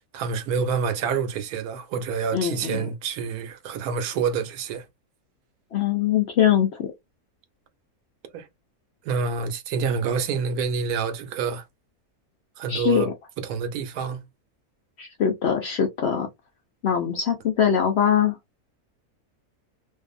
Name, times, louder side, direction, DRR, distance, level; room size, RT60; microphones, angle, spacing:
voice 1, 0.1-4.9 8.3-8.5 9.0-11.6 12.6-13.1 13.4-14.2, right 6 dB, 80° right, 1.1 m, -27 dB
voice 2, 2.3-2.9 5.7-6.9 12.7-13.1 15.0-16.3 16.8-18.4, left 9 dB, 65° left, 0.7 m, -22 dB
2.6 x 2.3 x 2.4 m
omnidirectional pair, 1.6 m